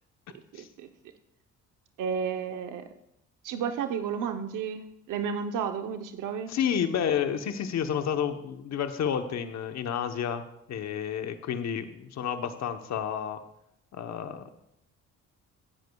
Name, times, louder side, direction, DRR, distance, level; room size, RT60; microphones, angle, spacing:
voice 1, 0.5-0.9 2.0-2.9 3.4-6.5, right 7 dB, 85° right, 7 dB, 0.9 m, -32 dB
voice 2, 6.5-10.4 10.7-13.4 13.9-14.6, left 8 dB, 65° left, 7 dB, 1.0 m, -30 dB
16.0 x 10.5 x 2.3 m, 0.80 s
cardioid pair, 90°, 30 cm